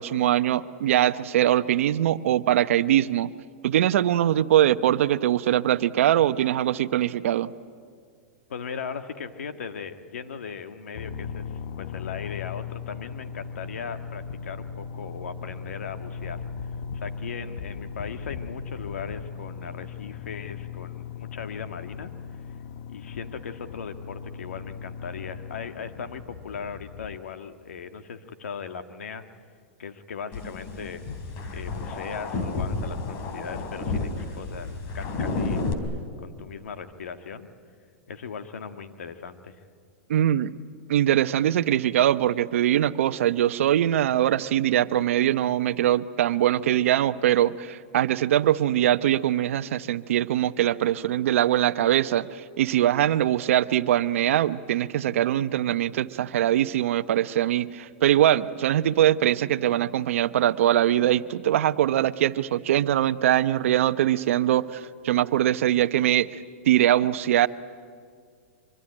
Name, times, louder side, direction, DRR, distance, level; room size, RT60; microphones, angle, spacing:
voice 1, 0.0-3.3 3.6-7.5 40.1-40.5 40.9-66.3 66.7-67.5, right 12 dB, 70° right, 13 dB, 0.9 m, -22 dB
voice 2, 8.5-11.4 11.8-16.4 16.9-22.1 22.9-29.2 29.8-31.0 31.5-34.1 34.3-35.7 36.2-37.5 38.1-39.6, left 6 dB, 90° left, 8 dB, 1.7 m, -38 dB
sound 1, 10.9-27.2, left 6 dB, 60° left, 0.9 m, -38 dB
sound 2, 30.3-35.7, left 3 dB, 45° left, 3.5 m, -31 dB
24.5 x 23.5 x 9.9 m, 2.1 s
hypercardioid pair, 135°, 7 cm